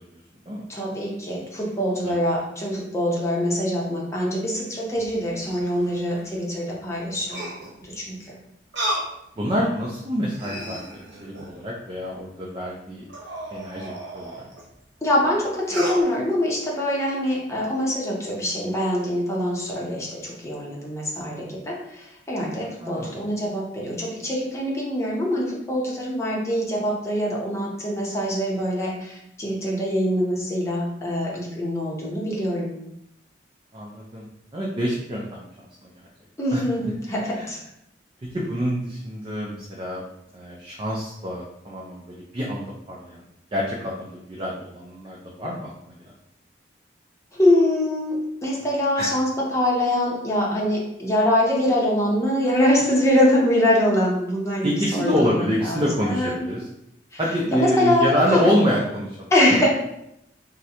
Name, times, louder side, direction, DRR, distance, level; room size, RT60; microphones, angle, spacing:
voice 1, 0.7-7.5 7.8-8.4 15.0-32.8 36.4-37.6 47.3-48.2 48.4-56.4 57.1-57.2 57.5-58.4 59.3-59.7, left 1 dB, 15° left, -4 dB, 0.7 m, -24 dB
sound 1, 4.9-6.3 7.3-7.8 8.7-9.1 9.7-9.8 10.2-11.6 13.1-14.6 15.6-16.0, right 1 dB, 85° right, 0.9 m, -33 dB
voice 2, 9.4-13.0 13.5-14.5 22.8-23.2 33.7-34.3 34.5-35.5 35.8-35.9 36.5-36.6 37.4-37.5 38.3-40.0 40.3-43.2 43.5-45.9 49.0-49.1 54.6-56.6 57.2-59.3, equal, 30° right, -4 dB, 0.4 m, -26 dB
3.6 x 2.1 x 2.8 m, 0.82 s
head